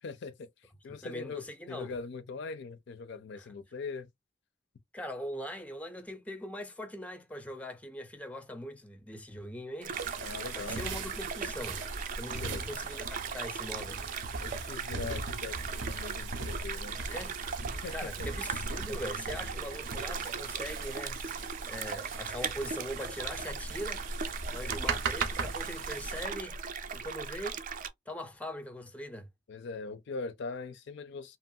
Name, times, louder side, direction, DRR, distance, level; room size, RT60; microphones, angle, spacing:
voice 1, 0.0-0.5 0.8-4.1 10.2-10.8 12.3-12.7 14.4-17.0 17.8-18.3 29.5-31.4, left 4 dB, 65° left, 0.4 m, -41 dB
voice 2, 0.9-1.9 3.4-3.5 4.9-10.0 10.6-11.8 12.2-14.0 17.1-17.4 17.9-24.0 24.5-26.6 26.9-27.6 28.1-29.3, equal, 10° left, 0.5 m, -41 dB
sound 1, 9.8-27.9, right 5 dB, 45° right, 0.4 m, -38 dB
sound 2, 9.9-26.3, right 4 dB, 75° right, 0.7 m, -40 dB
2.9 x 2.3 x 2.6 m
head